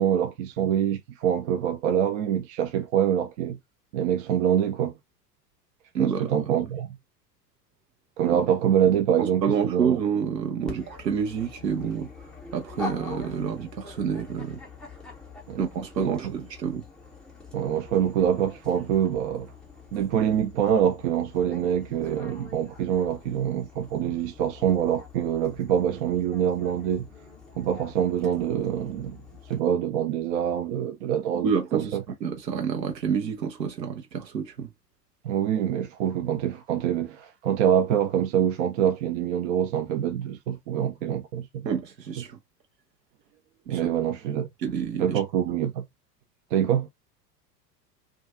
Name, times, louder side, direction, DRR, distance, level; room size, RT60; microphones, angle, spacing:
voice 1, 0.0-3.6 3.9-4.9 6.0-7.0 8.2-10.0 15.5-15.6 16.0-16.2 17.5-19.5 19.9-27.1 27.6-29.2 29.5-32.0 35.2-41.6 43.7-44.5 45.0-45.8 46.5-46.9, right 9 dB, 45° right, 0.5 m, -25 dB
voice 2, 5.9-6.5 9.2-12.1 12.5-14.6 15.6-16.8 31.4-34.7 41.6-42.4 43.7-43.9 44.6-45.2, right 7 dB, 80° right, 0.7 m, -28 dB
Dog, 10.7-29.6, left 4 dB, ahead, 0.5 m, -45 dB
2.3 x 2.3 x 2.4 m
figure-of-eight pair, 85°, 49 cm